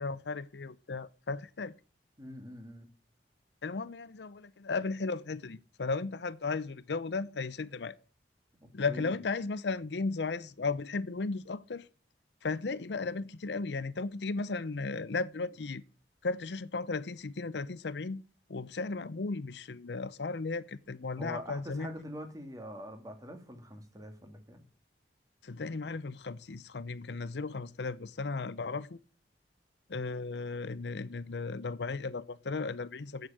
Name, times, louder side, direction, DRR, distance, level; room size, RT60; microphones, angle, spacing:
voice 1, 0.0-1.7 3.6-8.0 8.7-11.9 12.4-15.8 16.2-18.2 18.5-21.9 25.4-29.0 29.9-33.3, left 4 dB, 70° left, 0.6 m, -35 dB
voice 2, 2.2-2.9 8.9-9.1 21.2-24.6, equal, 20° right, 2.1 m, -44 dB
8.0 x 8.0 x 8.9 m
head